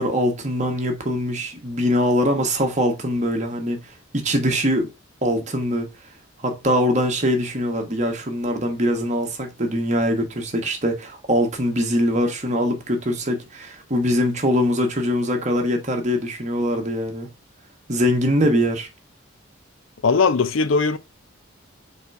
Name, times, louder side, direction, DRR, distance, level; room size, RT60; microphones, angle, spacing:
voice 1, 0.0-3.8 4.1-4.9 5.2-5.9 6.4-17.3 17.9-18.9, equal, 35° right, 1.3 m, -22 dB
voice 2, 20.0-21.0, left 4 dB, 75° left, 0.5 m, -19 dB
4.4 x 4.2 x 5.3 m
head